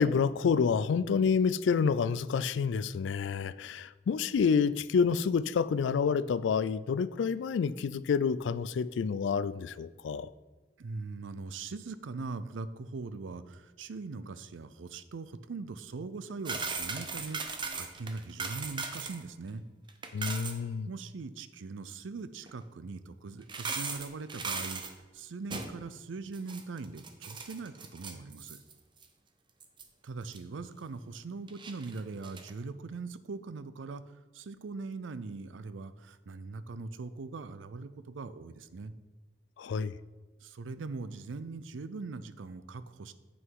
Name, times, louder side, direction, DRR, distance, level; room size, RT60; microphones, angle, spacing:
voice 1, 0.0-10.3 20.1-20.9 39.6-39.9, left 6 dB, 75° left, 17 dB, 0.3 m, -28 dB
voice 2, 10.8-19.6 20.9-24.8 25.1-28.6 30.0-34.0 34.3-38.9 40.4-43.1, right 4 dB, 90° right, 13 dB, 0.5 m, -41 dB
sound 1, 16.4-19.2 19.5-19.6 19.9-20.6 22.5-22.6 23.4-24.9 25.5-25.8 26.3-28.7 29.0-29.1 29.6-29.8 30.3-30.4 31.5-32.5, right 4 dB, 25° right, 0.7 m, -38 dB
8.0 x 6.2 x 4.7 m, 1.3 s
head